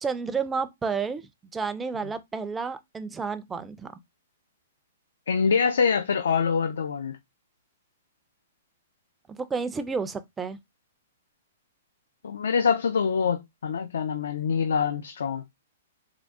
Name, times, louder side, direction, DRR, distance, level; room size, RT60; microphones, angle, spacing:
voice 1, 0.0-3.9 9.3-10.6, right 5 dB, 10° right, 0.3 m, -31 dB
voice 2, 5.3-7.2 12.2-15.4, left 6 dB, 85° left, 0.3 m, -25 dB
3.6 x 2.0 x 3.4 m
hypercardioid pair, 155°, 0 cm